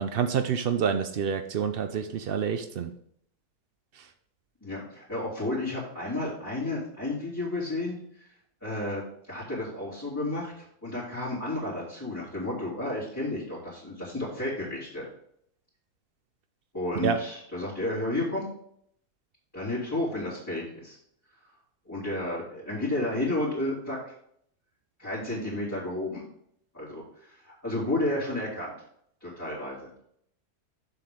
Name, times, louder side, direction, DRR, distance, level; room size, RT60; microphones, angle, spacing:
voice 1, 0.0-2.9 4.0-4.1 17.0-17.2, right 7 dB, 90° right, 9 dB, 0.5 m, -28 dB
voice 2, 4.6-8.3 8.6-15.1 16.7-18.4 19.5-21.0 21.8-24.1 25.0-26.2 26.7-28.7 29.2-29.9, left 2 dB, 10° left, -10 dB, 2.9 m, -32 dB
7.5 x 6.8 x 3.6 m, 0.68 s
omnidirectional pair, 1.7 m